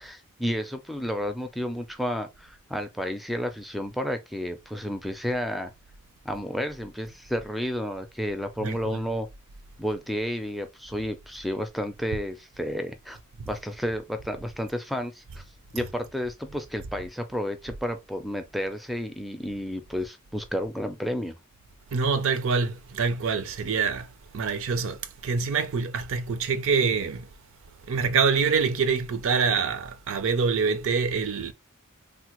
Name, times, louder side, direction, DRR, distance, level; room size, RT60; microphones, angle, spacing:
voice 1, 0.0-5.7 6.3-9.3 9.8-13.2 13.5-15.4 15.7-21.4, equal, ahead, 0.4 m, -31 dB
voice 2, 8.6-9.0 15.8-15.9 21.9-24.1 24.3-27.3 27.9-31.5, right 5 dB, 65° right, 0.5 m, -25 dB
3.3 x 2.1 x 2.9 m
head